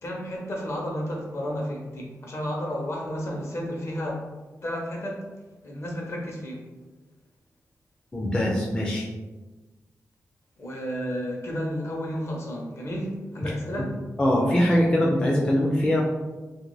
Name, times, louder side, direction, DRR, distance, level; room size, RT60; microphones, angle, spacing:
voice 1, 0.0-4.3 4.6-5.3 5.6-6.7 10.6-13.9, equal, 50° left, -1 dB, 0.7 m, -32 dB
voice 2, 8.1-9.1 14.2-16.0, left 1 dB, 15° left, -3 dB, 0.4 m, -22 dB
2.4 x 2.2 x 3.1 m, 1.2 s
wide cardioid pair, 110°, 6 cm